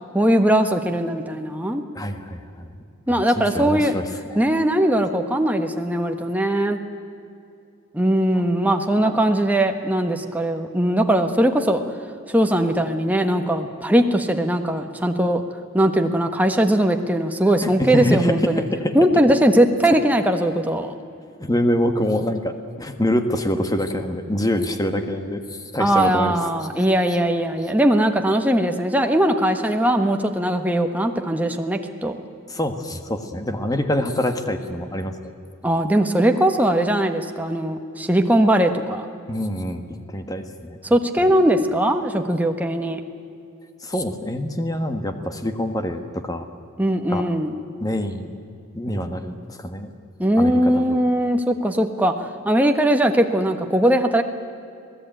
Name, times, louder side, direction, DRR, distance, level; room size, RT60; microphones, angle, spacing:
voice 1, 0.1-1.8 3.1-4.0 4.3-6.8 7.9-11.8 12.3-15.4 15.7-18.6 18.9-20.9 25.8-32.2 35.6-39.0 40.8-43.0 46.8-47.5 50.2-52.1 52.4-54.2, right 1 dB, 5° right, 4 dB, 1.3 m, -20 dB
voice 2, 1.9-2.7 3.1-4.4 9.0-9.2 17.6-19.0 21.4-26.4 32.5-35.1 39.3-39.8 40.1-40.8 43.8-46.4 47.1-47.2 47.8-48.3 48.7-49.9 50.4-51.0, left 1 dB, 15° left, 7 dB, 1.5 m, -25 dB
26.5 x 18.0 x 9.1 m, 2.6 s
head